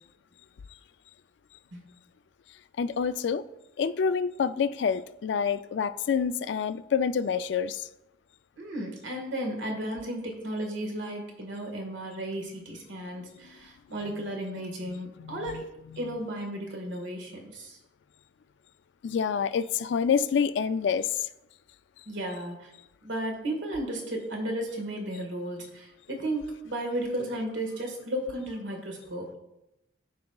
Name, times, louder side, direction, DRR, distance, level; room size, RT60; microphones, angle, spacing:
voice 1, 2.8-3.4 3.8-7.9 14.9-16.0 19.0-21.3, left 6 dB, 65° left, 0.3 m, -28 dB
voice 2, 8.6-15.6 16.0-17.8 22.0-22.7 23.0-29.4, right 1 dB, 80° right, 1.6 m, -34 dB
13.0 x 4.8 x 2.3 m
head